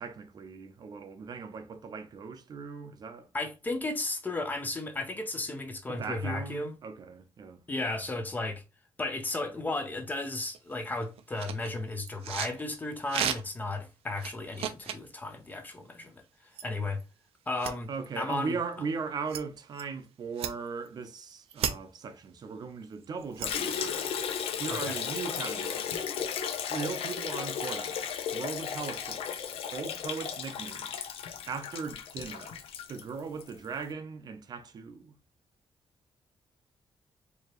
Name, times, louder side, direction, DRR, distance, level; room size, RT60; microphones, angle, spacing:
voice 1, 0.0-3.3 5.9-7.6 17.9-24.3 24.6-26.1 26.7-29.4 29.7-31.1 31.5-32.6 32.9-35.1, right 5 dB, 45° right, 0.6 m, -38 dB
voice 2, 3.3-6.8 7.7-8.6 9.0-16.2 16.6-17.0 17.5-17.9 18.2-18.6 24.7-25.0, left 2 dB, 15° left, 0.6 m, -34 dB
sound 1, 10.2-10.3 10.5-12.7 13.1-13.7 14.2-15.1 16.5-16.6 17.0-17.1 17.6-17.7 18.3-18.4 19.3-19.4 19.7-19.8 20.3-20.9 21.3-21.7 22.9-23.9, right 9 dB, 85° right, 0.6 m, -35 dB
Liquid, 23.4-33.5, left 7 dB, 75° left, 0.6 m, -35 dB
4.6 x 2.8 x 2.9 m
wide cardioid pair, 175°, 10 cm